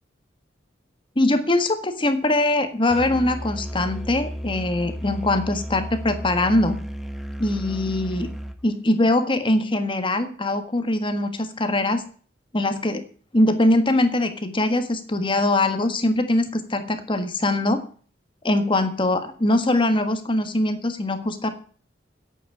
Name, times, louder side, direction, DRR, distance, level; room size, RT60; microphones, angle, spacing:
voice 1, 1.1-6.8 7.4-8.3 8.6-12.0 12.5-13.0 13.3-17.8 18.4-21.5, left 1 dB, 30° left, 8 dB, 1.5 m, -22 dB
Musical instrument, 2.9-8.6, equal, ahead, 1.2 m, -33 dB
10.5 x 8.4 x 8.5 m, 0.43 s
head